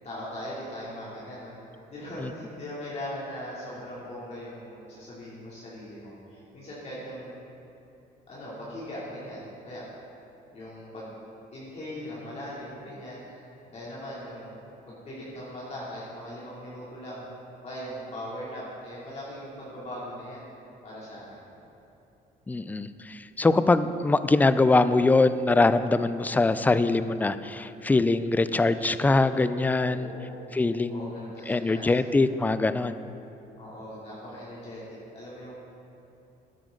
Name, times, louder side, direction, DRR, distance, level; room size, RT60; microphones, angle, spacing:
voice 1, 0.0-1.5 1.9-7.4 8.3-9.8 10.5-11.1 11.5-14.6 14.9-17.3 17.6-20.5 20.8-21.4 29.8-30.4 30.9-32.3 33.5-35.5, equal, 40° left, -8 dB, 2.9 m, -40 dB
voice 2, 22.5-30.1 30.5-33.0, left 3 dB, 10° left, 13 dB, 0.3 m, -23 dB
13.0 x 10.0 x 3.8 m, 2.9 s
cardioid pair, 110°, 17 cm